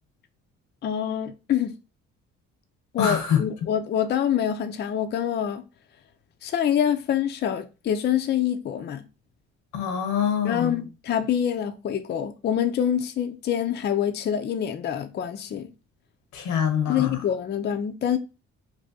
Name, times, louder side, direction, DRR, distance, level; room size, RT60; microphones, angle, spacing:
voice 1, 0.8-1.7 2.9-5.6 6.4-9.0 10.4-15.7 16.9-18.2, left 9 dB, 35° left, 0.4 m, -26 dB
voice 2, 3.0-3.4 9.7-10.8 16.3-17.2, left 8 dB, 85° left, 0.8 m, -25 dB
2.6 x 2.3 x 3.4 m
cardioid pair, 80°, 29 cm